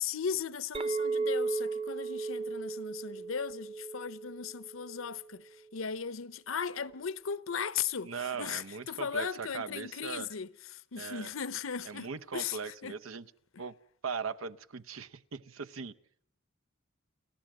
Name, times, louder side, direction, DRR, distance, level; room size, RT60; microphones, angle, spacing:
voice 1, 0.0-13.0, left 7 dB, 80° left, 0.8 m, -37 dB
Chink clink, 0.7-5.2, right 4 dB, 25° right, 0.8 m, -35 dB
voice 2, 8.0-10.3 11.0-11.3 11.8-13.3 13.6-13.8 14.0-15.9, right 5 dB, 90° right, 0.8 m, -39 dB
29.5 x 13.0 x 7.6 m
head